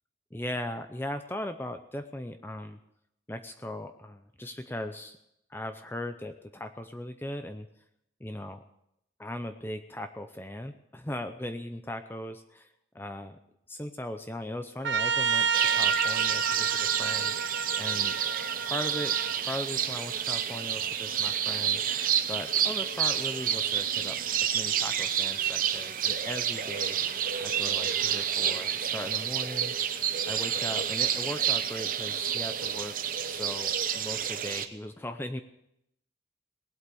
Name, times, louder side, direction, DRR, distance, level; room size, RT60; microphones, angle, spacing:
voice 1, 0.3-2.8 3.3-5.2 5.5-7.7 8.2-8.6 9.2-13.4 13.7-18.2 18.7-19.1 19.4-21.8 22.3-27.0 27.4-29.7 30.3-32.9 33.3-35.4, left 1 dB, 10° left, 8 dB, 0.6 m, -38 dB
Trumpet, 14.8-19.4, right 6 dB, 80° right, 0.7 m, -30 dB
sound 1, 15.5-34.7, right 9 dB, 50° right, 0.8 m, -29 dB
19.0 x 8.2 x 6.9 m, 0.79 s
head